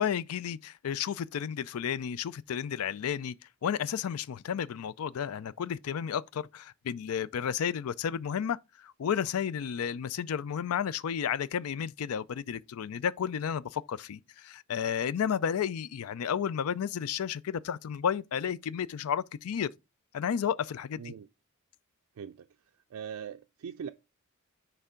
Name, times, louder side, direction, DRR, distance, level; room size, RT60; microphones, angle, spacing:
voice 1, 0.0-3.3 3.6-19.7 20.1-21.1, left 8 dB, 90° left, 0.4 m, -32 dB
voice 2, 21.0-21.3 22.2-22.5 22.9-23.9, right 7 dB, 85° right, 0.4 m, -41 dB
9.8 x 3.4 x 3.7 m
head